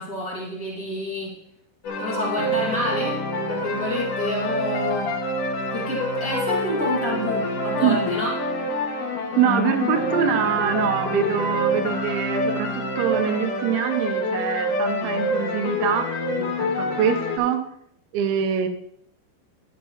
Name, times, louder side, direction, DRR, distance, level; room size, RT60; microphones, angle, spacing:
voice 1, 0.0-1.3 2.0-3.2 3.5-5.1 5.7-8.3, left 1 dB, 80° left, -5 dB, 0.7 m, -28 dB
sound 1, 1.8-17.4, left 1 dB, 55° left, 2.7 m, -26 dB
voice 2, 7.8-8.1 9.4-17.6 18.1-18.7, right 9 dB, 80° right, 6 dB, 3.2 m, -24 dB
12.5 x 10.5 x 2.9 m, 0.71 s
omnidirectional pair, 5.3 m